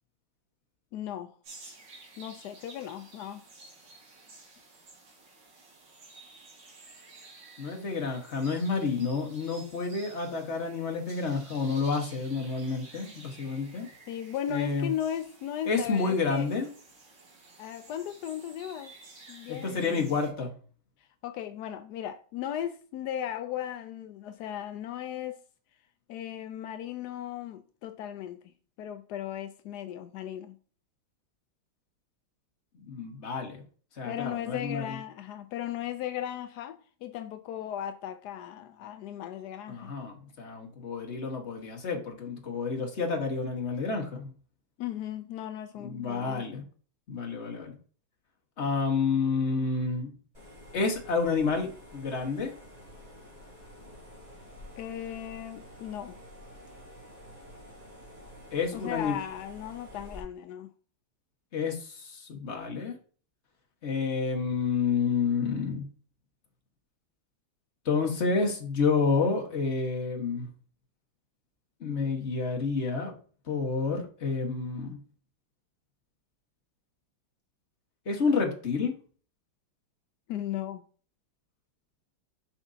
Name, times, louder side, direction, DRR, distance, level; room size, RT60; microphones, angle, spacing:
voice 1, 0.9-1.3 2.2-3.4 14.1-16.5 17.6-18.9 19.3-20.2 21.2-25.4 26.1-28.4 28.8-30.5 34.0-39.9 44.8-46.5 54.8-56.2 58.7-60.7 80.3-80.8, left 10 dB, 80° left, 0.9 m, -36 dB
sound 1, 1.4-20.3, right 3 dB, 60° right, 2.4 m, -52 dB
voice 2, 7.6-13.9 14.5-14.9 15.7-16.7 19.6-20.5 32.9-33.6 34.0-35.0 39.7-44.3 45.8-46.6 47.1-47.7 48.6-50.1 50.7-52.5 58.5-59.2 61.5-63.0 63.8-65.8 67.8-70.5 71.8-73.1 73.5-75.0 78.0-78.9, left 4 dB, 35° left, 1.5 m, -29 dB
sound 2, 50.3-60.2, equal, 20° right, 3.8 m, -49 dB
7.1 x 6.0 x 2.7 m
omnidirectional pair, 2.3 m